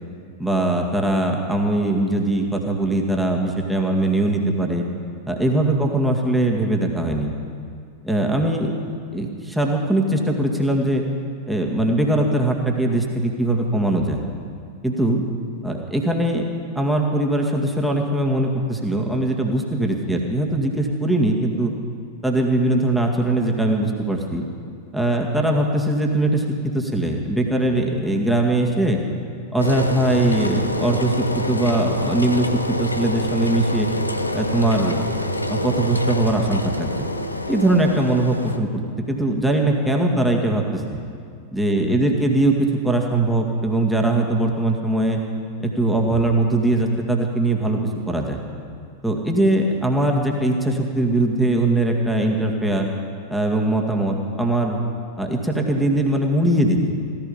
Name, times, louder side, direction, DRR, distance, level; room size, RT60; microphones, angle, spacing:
voice 1, 0.4-4.8 5.3-7.3 8.0-8.7 9.1-11.0 11.5-14.2 14.8-15.2 15.6-16.4 16.8-21.7 22.2-24.5 24.9-26.4 26.7-29.0 29.5-32.5 32.8-33.9 34.3-35.0 35.5-37.0 37.5-38.8 39.1-41.0 41.5-45.2 45.6-47.8 48.1-48.4 49.0-52.9 53.3-54.8 55.2-56.8, right 1 dB, 5° right, 1 dB, 2.1 m, -21 dB
Engine, 29.6-38.6, left 1 dB, 85° left, 0.8 m, -26 dB
16.0 x 15.0 x 5.7 m, 2.2 s
figure-of-eight pair, 90°, 0 cm